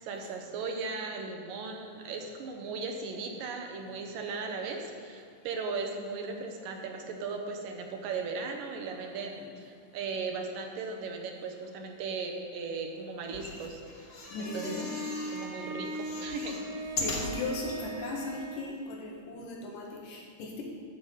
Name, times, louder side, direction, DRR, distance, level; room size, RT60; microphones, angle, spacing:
voice 1, 0.0-13.8 14.4-14.7 15.3-16.7, right 4 dB, 80° right, 2 dB, 2.6 m, -37 dB
voice 2, 9.0-9.5 14.3-14.9 17.0-20.6, left 3 dB, 75° left, -1 dB, 3.2 m, -38 dB
sound 1, 13.2-15.5 15.8-17.8 18.4-18.5 18.7-18.8, left 2 dB, 45° left, 1.7 m, -39 dB
Bowed string instrument, 14.4-18.8, right 1 dB, 40° right, 1.7 m, -39 dB
12.0 x 5.8 x 7.9 m, 2.1 s
omnidirectional pair, 3.9 m